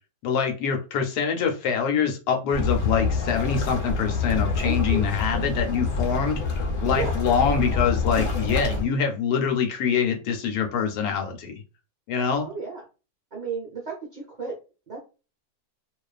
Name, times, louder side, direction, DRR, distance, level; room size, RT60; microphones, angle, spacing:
voice 1, 0.2-11.6 12.1-12.5, left 6 dB, 80° left, 1.1 m, -25 dB
sound 1, 2.5-8.8, left 4 dB, 60° left, 0.8 m, -26 dB
voice 2, 4.6-5.0 6.9-7.1 12.4-12.8 13.3-14.5 14.9-15.0, right 5 dB, 55° right, 0.4 m, -33 dB
2.4 x 2.3 x 2.3 m
omnidirectional pair, 1.7 m